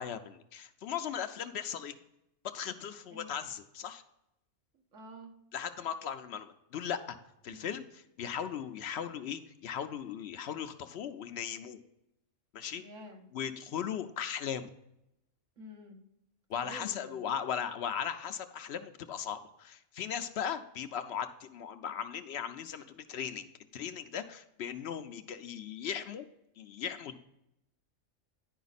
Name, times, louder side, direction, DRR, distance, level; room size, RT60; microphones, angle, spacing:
voice 1, 0.0-2.0 2.4-4.0 5.5-7.2 7.4-11.8 12.5-12.8 13.3-14.7 16.5-26.3 26.6-27.2, left 8 dB, 65° left, 10 dB, 0.8 m, -38 dB
voice 2, 4.9-5.3 7.5-7.7 12.8-13.3 15.6-16.0 16.6-17.2, equal, 85° right, 2 dB, 1.7 m, -49 dB
10.0 x 5.1 x 4.0 m, 0.85 s
omnidirectional pair, 1.3 m